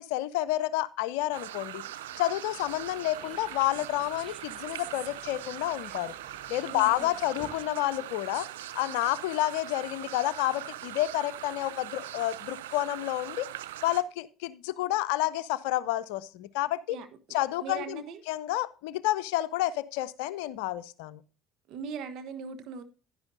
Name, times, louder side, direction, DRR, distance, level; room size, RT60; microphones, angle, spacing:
voice 1, 0.0-1.8 2.2-6.1 6.5-8.5 8.7-13.5 13.8-17.0 17.3-21.2, left 15 dB, 70° left, 0.5 m, -30 dB
sound 1, 1.3-14.0, right 13 dB, 75° right, 0.5 m, -41 dB
Seagull and engine activity (another perspective), 2.5-7.7, right 2 dB, 25° right, 2.8 m, -53 dB
voice 2, 6.7-7.1 16.9-17.1 17.6-18.2 21.7-22.8, right 6 dB, 55° right, 1.1 m, -39 dB
10.5 x 10.5 x 2.6 m
figure-of-eight pair, 60°, 0 cm